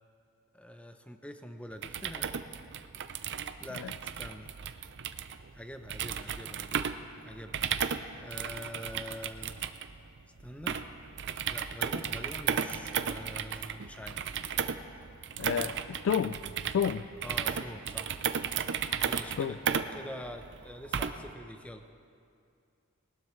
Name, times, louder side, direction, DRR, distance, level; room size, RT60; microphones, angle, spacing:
voice 1, 0.5-2.4 3.1-4.5 5.5-6.9 7.2-7.7 8.2-9.6 10.4-10.8 11.5-14.2 17.2-18.2 19.1-21.8, equal, 5° left, 7 dB, 0.7 m, -45 dB
sound 1, 1.7-21.3, right 7 dB, 55° right, 0.6 m, -35 dB
voice 2, 15.4-16.4 16.7-17.0 19.4-19.5, left 7 dB, 60° left, 14 dB, 0.3 m, -30 dB
20.5 x 19.0 x 3.2 m, 2.4 s
head